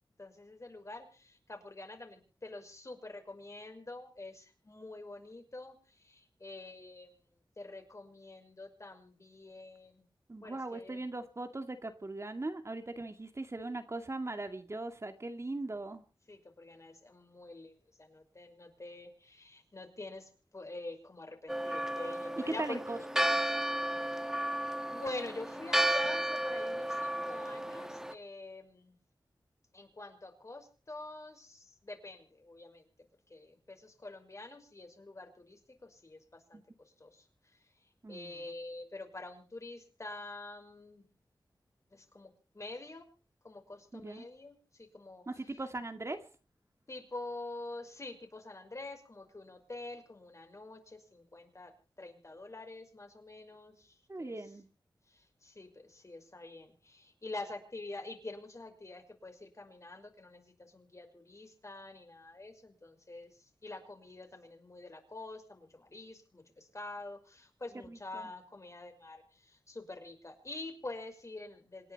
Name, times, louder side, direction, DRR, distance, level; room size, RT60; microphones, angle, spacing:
voice 1, 0.2-10.0 10.4-11.0 16.3-22.8 23.9-24.0 24.9-29.0 29.7-32.9 33.3-41.1 41.9-43.1 43.4-45.6 46.9-51.7 52.0-54.4 55.1-71.9, left 2 dB, 40° left, 6 dB, 5.7 m, -47 dB
voice 2, 10.3-16.0 22.5-23.2 36.5-36.6 38.0-38.4 43.9-44.3 45.3-46.2 54.1-54.7 67.9-68.3, right 2 dB, 35° right, 7 dB, 2.3 m, -39 dB
Church bell, 21.5-28.1, right 1 dB, 5° right, 1.4 m, -33 dB
27.0 x 10.5 x 4.3 m, 0.39 s
wide cardioid pair, 65°, 8 cm